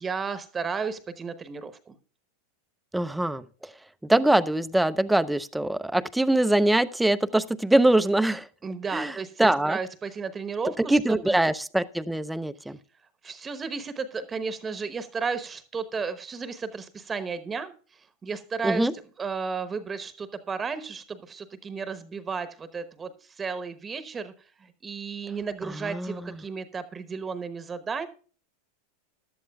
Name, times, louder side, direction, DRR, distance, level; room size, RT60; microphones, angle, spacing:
voice 1, 0.0-1.9 8.6-11.4 13.2-18.9 19.2-24.3 24.6-28.1, right 5 dB, 20° right, 1.0 m, -33 dB
voice 2, 2.9-3.7 4.0-8.5 8.9-9.8 10.8-12.8 18.6-18.9 25.8-26.3, right 1 dB, 5° right, 0.6 m, -23 dB
15.0 x 11.0 x 2.3 m
hypercardioid pair, 105°, 0 cm